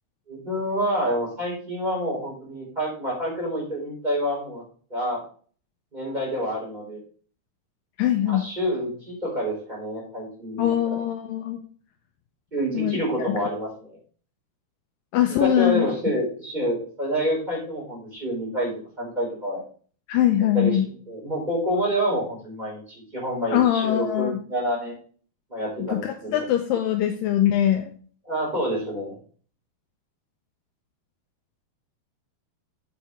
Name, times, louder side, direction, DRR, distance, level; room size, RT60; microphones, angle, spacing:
voice 1, 0.3-4.6 4.9-5.2 5.9-7.0 8.3-10.7 12.5-14.0 15.4-18.7 19.0-19.6 20.5-20.8 21.1-25.0 25.5-26.4 28.3-29.2, equal, 10° right, -5 dB, 4.7 m, -27 dB
voice 2, 8.0-8.5 10.6-11.6 12.7-13.0 13.3-13.4 15.1-15.9 20.1-20.9 23.5-24.4 25.8-27.9, left 11 dB, 85° left, 6 dB, 2.0 m, -22 dB
8.0 x 7.4 x 3.2 m, 0.42 s
omnidirectional pair, 4.7 m